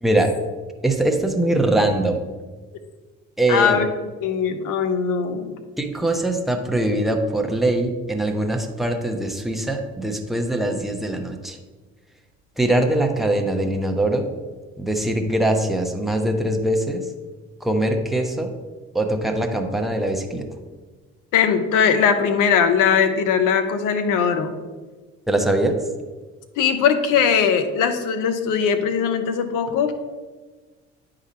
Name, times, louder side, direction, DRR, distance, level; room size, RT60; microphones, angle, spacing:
voice 1, 0.0-0.4 0.8-2.2 3.4-3.8 5.8-11.6 12.6-14.3 14.8-17.1 17.6-18.5 18.9-20.5 25.3-25.8, right 1 dB, ahead, 3 dB, 1.1 m, -22 dB
voice 2, 3.5-3.9 4.2-5.6 21.3-24.5 26.6-29.9, left 7 dB, 65° left, 8 dB, 0.9 m, -20 dB
9.6 x 3.9 x 4.3 m, 1.3 s
hypercardioid pair, 55°, 33 cm